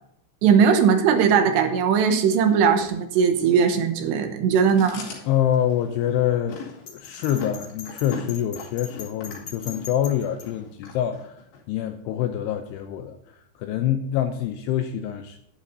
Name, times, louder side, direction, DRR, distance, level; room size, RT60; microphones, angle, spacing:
voice 1, 0.4-5.0, right 7 dB, 80° right, 6 dB, 2.9 m, -19 dB
Chewing mastication, 4.6-11.6, left 5 dB, 65° left, 4.4 m, -40 dB
voice 2, 5.3-11.4 11.7-15.4, left 10 dB, 90° left, 7 dB, 2.4 m, -26 dB
Bell, 6.9-10.5, left 6 dB, 35° left, 4.1 m, -40 dB
11.5 x 11.0 x 2.7 m, 0.77 s
omnidirectional pair, 5.3 m